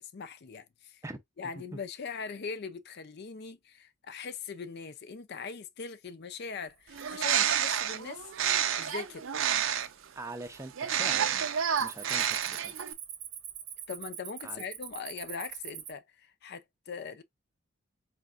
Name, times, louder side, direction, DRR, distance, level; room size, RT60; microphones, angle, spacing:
voice 1, 0.1-1.0 1.4-8.2 8.8-9.2 13.9-17.2, left 5 dB, 50° left, 0.5 m, -41 dB
Bird, 6.9-10.0 10.8-12.9, right 9 dB, 65° right, 0.6 m, -29 dB
Cricket, 6.9-7.4 7.8-8.3 8.9-9.0 9.6-10.2 10.4-10.7 11.1-15.9, right 9 dB, 90° right, 1.1 m, -43 dB
voice 2, 10.2-11.5 11.8-12.7 14.4-14.6, right 2 dB, 15° right, 0.5 m, -43 dB
4.3 x 3.3 x 2.4 m
head